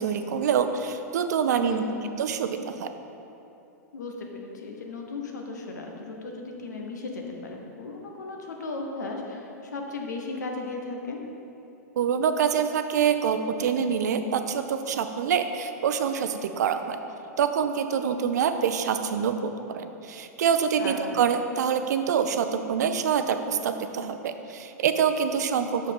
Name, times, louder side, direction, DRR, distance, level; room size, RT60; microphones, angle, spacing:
voice 1, 0.0-1.8 2.2-2.9 12.0-17.0 17.4-25.9, right 7 dB, 75° right, 8 dB, 0.5 m, -26 dB
voice 2, 1.6-1.9 3.9-11.2 20.8-21.2, left 3 dB, 85° left, 1 dB, 1.1 m, -36 dB
6.3 x 5.2 x 5.3 m, 2.9 s
hypercardioid pair, 115°, 9 cm